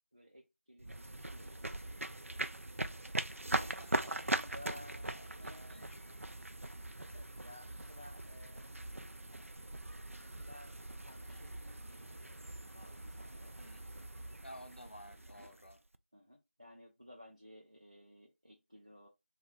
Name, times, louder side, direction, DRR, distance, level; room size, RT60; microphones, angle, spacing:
voice 1, 0.1-2.8 3.6-6.1 7.1-9.0 10.2-10.7 11.0-13.6 16.1-19.1, left 1 dB, 30° right, 0.5 m, -57 dB
sound 1, 0.8-16.0, right 1 dB, 90° right, 0.4 m, -41 dB
voice 2, 3.5-4.6 4.9-6.6 13.6-14.2 14.4-15.8, equal, 55° left, 0.6 m, -55 dB
2.6 x 2.2 x 3.5 m
figure-of-eight pair, 175°, 7 cm